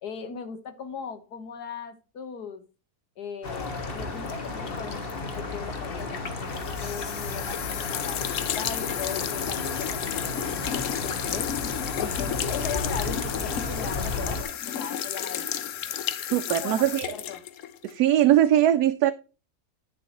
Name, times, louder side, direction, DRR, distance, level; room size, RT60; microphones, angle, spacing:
voice 1, 0.0-2.6 3.2-8.2 8.6-11.5 12.0-15.5 16.5-17.4, left 6 dB, 80° left, 1.8 m, -38 dB
sound 1, 3.4-14.4, left 3 dB, 40° left, 1.3 m, -33 dB
sound 2, 6.5-18.0, left 10 dB, 60° left, 1.0 m, -32 dB
voice 2, 16.3-17.1 17.8-19.1, right 12 dB, 80° right, 1.1 m, -21 dB
9.5 x 7.0 x 2.9 m
omnidirectional pair, 1.7 m